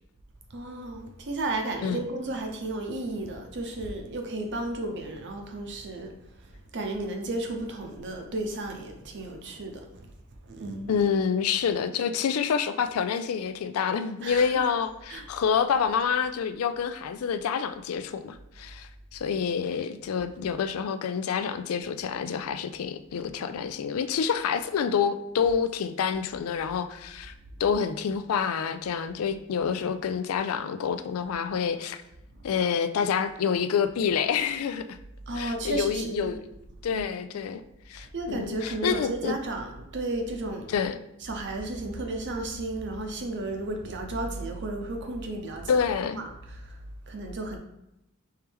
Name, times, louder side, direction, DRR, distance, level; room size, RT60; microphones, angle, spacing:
voice 1, 0.5-6.1 6.4-9.9 10.5-11.1 14.2-14.5 15.1-15.3 32.5-32.6 35.3-36.3 36.9-37.0 37.3-37.5 37.9-40.7 41.2-46.8 47.1-47.6, right 2 dB, 55° right, 0.7 m, -33 dB
voice 2, 10.9-27.3 27.6-32.0 32.4-34.9 35.4-36.4 36.8-37.6 37.9-39.3 40.7-41.0 45.7-46.3, left 7 dB, 80° left, 0.4 m, -27 dB
4.5 x 3.2 x 3.5 m
head